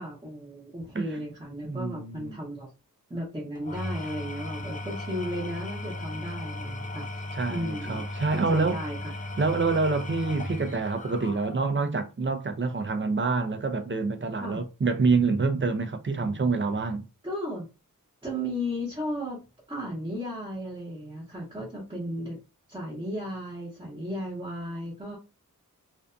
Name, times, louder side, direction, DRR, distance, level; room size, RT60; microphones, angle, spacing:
voice 1, 0.0-2.7 3.1-7.1 7.5-8.0 8.3-9.0 14.4-14.6 17.2-17.7 18.2-22.4 22.7-25.2, equal, 15° right, 0.9 m, -35 dB
voice 2, 1.6-2.3 7.3-8.8 9.4-17.0, right 4 dB, 35° right, 0.4 m, -27 dB
Engine / Tools, 3.6-11.9, left 2 dB, 25° left, 0.4 m, -36 dB
2.5 x 2.2 x 2.4 m
wide cardioid pair, 95°, 35 cm